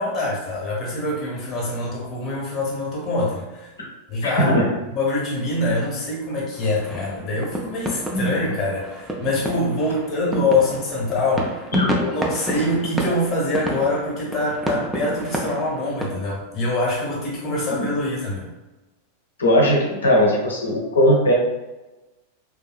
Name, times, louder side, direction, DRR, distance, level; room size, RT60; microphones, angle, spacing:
voice 1, 0.0-3.7 4.1-4.6 4.9-11.6 12.0-18.5, left 2 dB, 30° left, -3 dB, 1.0 m, -24 dB
voice 2, 4.2-4.7 8.1-8.4 11.7-11.9 17.7-17.9 19.4-21.3, equal, 70° left, -2 dB, 0.6 m, -18 dB
sound 1, 6.5-16.1, right 1 dB, 5° right, 0.4 m, -30 dB
2.6 x 2.4 x 2.3 m, 1.1 s
figure-of-eight pair, 90°, 0 cm